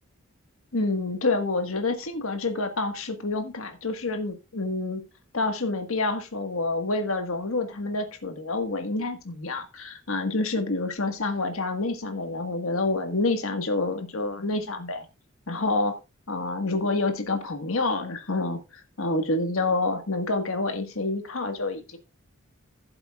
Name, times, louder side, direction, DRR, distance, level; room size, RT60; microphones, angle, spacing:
voice 1, 0.7-5.0 5.3-15.1 15.5-16.0 16.3-22.0, left 2 dB, 75° left, 1.6 m, -28 dB
15.0 x 7.7 x 2.4 m
head